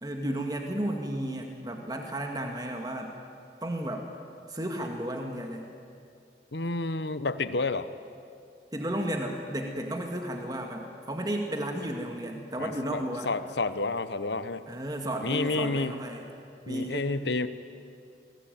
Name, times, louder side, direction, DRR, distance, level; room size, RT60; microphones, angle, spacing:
voice 1, 0.0-3.1 3.6-4.1 4.5-5.7 8.7-13.3 14.7-16.2 16.7-17.0, right 1 dB, 20° right, 3 dB, 1.9 m, -33 dB
voice 2, 6.5-7.9 12.6-14.7 15.2-16.0 16.7-17.5, left 3 dB, 80° left, 12 dB, 1.1 m, -30 dB
27.5 x 19.5 x 9.2 m, 2.4 s
head